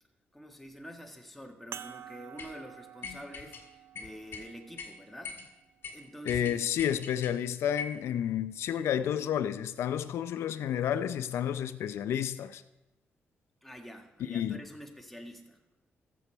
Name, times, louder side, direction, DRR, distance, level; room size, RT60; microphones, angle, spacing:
voice 1, 0.3-5.4 5.9-6.6 8.8-8.9 13.6-15.6, equal, 5° left, 1.5 m, -47 dB
sound 1, 1.7-6.5 7.3-7.4 9.5-9.7, right 9 dB, 70° right, 0.4 m, -50 dB
sound 2, 2.4-2.5 3.0-3.6 3.9-4.5 4.8-4.9 5.2-5.5 5.8-5.9 6.3-7.3 7.8-8.0, left 5 dB, 60° left, 2.1 m, -41 dB
voice 2, 6.3-12.6 14.2-14.6, left 10 dB, 85° left, 0.5 m, -31 dB
14.0 x 7.1 x 4.5 m
cardioid pair, 85°, 4 cm